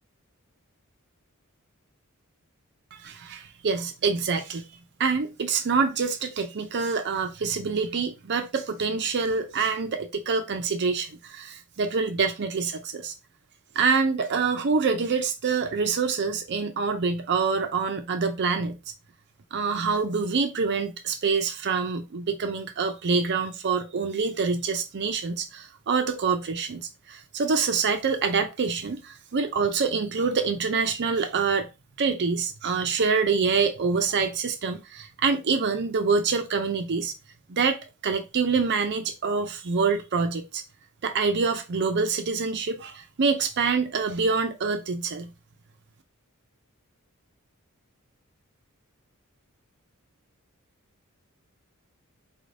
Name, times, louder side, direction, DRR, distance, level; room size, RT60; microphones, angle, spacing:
voice 1, 2.9-4.6 5.0-13.1 13.8-18.8 19.5-31.7 32.0-37.1 37.5-40.6 41.0-45.3, right 5 dB, 50° right, 0.5 m, -26 dB
4.2 x 2.6 x 3.2 m
head